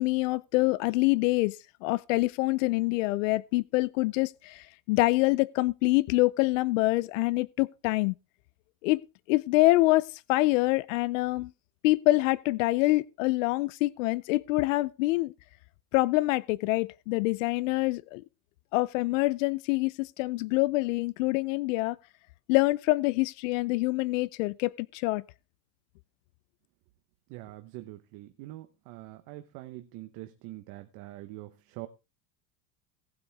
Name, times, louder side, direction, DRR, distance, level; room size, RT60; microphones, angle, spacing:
voice 1, 0.0-1.6 1.8-8.1 8.8-9.0 9.3-11.5 11.8-15.3 15.9-18.2 18.7-22.0 22.5-25.2, left 20 dB, 75° left, 0.6 m, -26 dB
voice 2, 27.3-31.9, right 17 dB, 55° right, 1.1 m, -44 dB
18.5 x 8.0 x 3.5 m
supercardioid pair, 150°, 38 cm